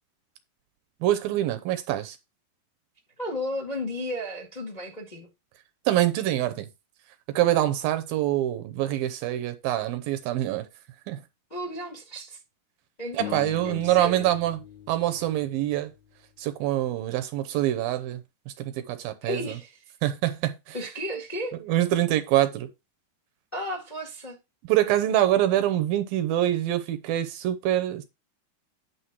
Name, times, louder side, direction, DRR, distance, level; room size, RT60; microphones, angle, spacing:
voice 1, 1.0-2.2 5.9-6.7 7.3-10.7 11.1-11.2 13.1-15.9 16.4-19.6 20.0-20.8 21.6-22.7 24.6-28.1, right 13 dB, 75° right, 2.4 m, -25 dB
voice 2, 3.2-5.3 11.5-12.4 13.0-13.4 13.6-14.3 19.2-19.7 20.7-21.6 23.5-24.4, equal, 25° left, 0.9 m, -33 dB
sound 1, 13.2-16.4, left 12 dB, 80° left, 1.6 m, -41 dB
9.5 x 3.5 x 6.0 m
omnidirectional pair, 4.4 m